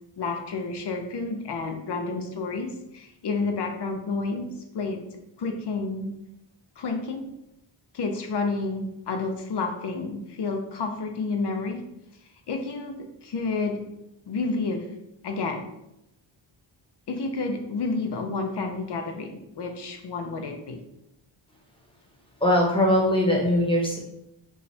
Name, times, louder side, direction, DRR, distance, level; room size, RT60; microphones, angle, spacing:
voice 1, 0.2-4.5 4.7-5.0 5.4-6.2 6.8-7.3 7.9-11.9 12.5-13.8 14.3-14.9 15.2-15.7 17.1-20.8, left 3 dB, 60° left, 5 dB, 0.7 m, -30 dB
voice 2, 22.4-24.0, left 1 dB, 10° left, -1 dB, 1.0 m, -21 dB
5.2 x 2.4 x 3.3 m, 0.83 s
wide cardioid pair, 115°, 47 cm